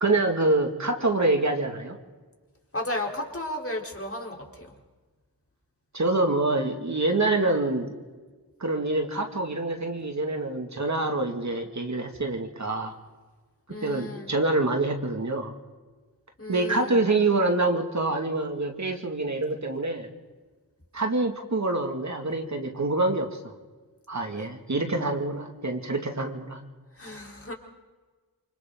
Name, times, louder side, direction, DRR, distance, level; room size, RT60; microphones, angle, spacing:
voice 1, 0.0-2.0 5.9-7.9 8.6-12.9 13.8-15.5 16.5-20.1 20.9-23.5 24.1-26.6, right 2 dB, 45° right, 4 dB, 2.4 m, -26 dB
voice 2, 2.7-4.7 13.7-14.3 16.4-17.0 27.0-27.5, left 1 dB, 35° left, 0 dB, 4.3 m, -34 dB
28.5 x 24.5 x 4.0 m, 1.3 s
cardioid pair, 60°, 40 cm